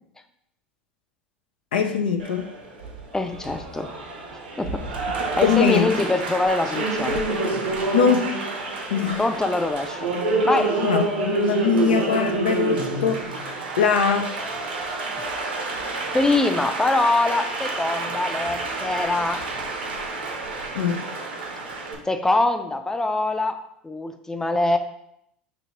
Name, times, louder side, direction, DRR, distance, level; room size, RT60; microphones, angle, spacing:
voice 1, 1.7-2.5 5.2-5.9 7.9-8.4 8.9-9.2 10.8-14.3 20.7-21.1, left 6 dB, 75° left, 5 dB, 0.4 m, -22 dB
Applause, 2.2-22.0, right 3 dB, 80° right, 0.9 m, -28 dB
voice 2, 3.1-3.9 4.6-4.8 5.4-7.2 9.2-10.1 10.4-10.7 16.1-19.4 22.1-23.6 23.8-24.8, left 2 dB, 10° left, 8 dB, 0.5 m, -23 dB
6.0 x 2.8 x 3.0 m, 0.76 s
figure-of-eight pair, 75°, 5 cm